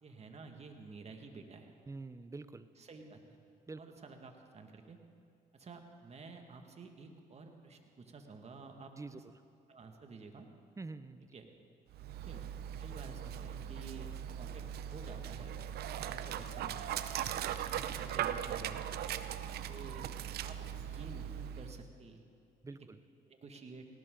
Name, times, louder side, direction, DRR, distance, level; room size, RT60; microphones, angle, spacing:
voice 1, 0.0-1.7 2.8-3.2 3.8-5.0 5.5-9.2 9.7-10.5 11.2-11.5 12.1-12.4 12.8-14.6 14.9-15.5 16.0-16.8 17.6-19.1 19.7-20.1 20.4-22.2 22.7-22.9 23.2-23.9, right 4 dB, 35° right, 4 dB, 2.0 m, -51 dB
voice 2, 1.9-2.7 3.7-3.8 9.0-9.2 10.8-11.3 22.6-23.0, right 3 dB, 15° right, 13 dB, 0.7 m, -46 dB
Dog, 11.9-21.8, right 10 dB, 65° right, 0.7 m, -39 dB
18.5 x 18.0 x 3.9 m, 2.6 s
supercardioid pair, 75°, 18 cm